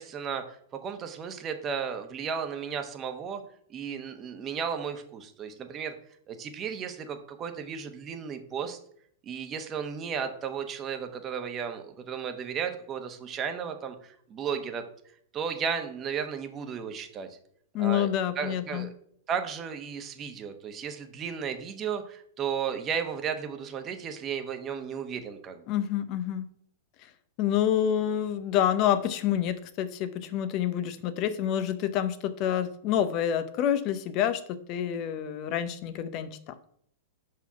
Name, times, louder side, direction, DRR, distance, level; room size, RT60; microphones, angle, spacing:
voice 1, 0.0-3.4 3.7-5.9 6.3-8.8 9.2-14.8 15.3-17.4 17.8-18.1 18.4-18.9 19.3-25.6, right 7 dB, 30° right, 7 dB, 1.1 m, -34 dB
voice 2, 17.7-18.9 25.7-26.5 27.4-36.5, left 10 dB, 45° left, 12 dB, 0.7 m, -28 dB
5.7 x 4.7 x 5.8 m, 0.65 s
hypercardioid pair, 110°, 0 cm